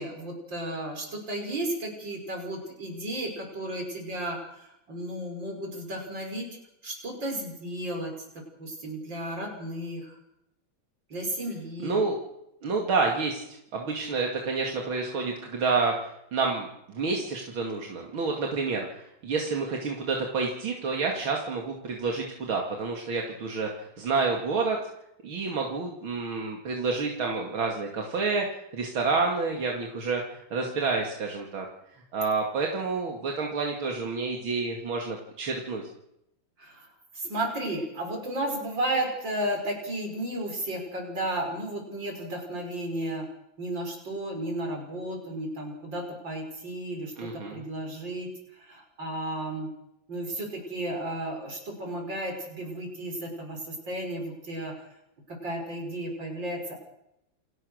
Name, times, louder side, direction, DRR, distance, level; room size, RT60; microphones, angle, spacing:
voice 1, 0.0-4.4 4.9-6.4 6.8-8.1 8.6-10.0 11.1-12.0 36.6-36.7 37.2-43.2 43.6-47.1 47.5-48.3 48.7-49.7 50.1-53.6 53.9-54.7 55.4-56.8, right 1 dB, 65° right, 2 dB, 6.4 m, -33 dB
voice 2, 11.8-12.2 12.6-24.8 25.2-31.7 32.1-35.8 47.2-47.6, right 4 dB, 85° right, 0 dB, 3.2 m, -29 dB
28.5 x 16.0 x 6.6 m, 0.82 s
omnidirectional pair, 2.2 m